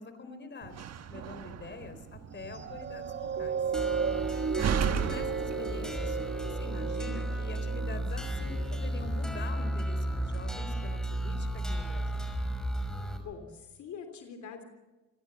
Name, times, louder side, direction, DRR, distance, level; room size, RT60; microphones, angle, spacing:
voice 1, 0.0-3.6 4.3-12.3, left 4 dB, 35° left, 10 dB, 3.9 m, -45 dB
Slam, 0.6-6.2, right 7 dB, 60° right, 1.5 m, -36 dB
sound 1, 2.4-9.1 9.7-9.9, right 6 dB, 40° right, 1.7 m, -35 dB
sound 2, 3.7-13.2, right 1 dB, ahead, 5.6 m, -34 dB
voice 2, 13.2-14.6, left 6 dB, 70° left, 6 dB, 3.4 m, -44 dB
27.5 x 17.0 x 7.0 m, 1.1 s
cardioid pair, 90°, 30 cm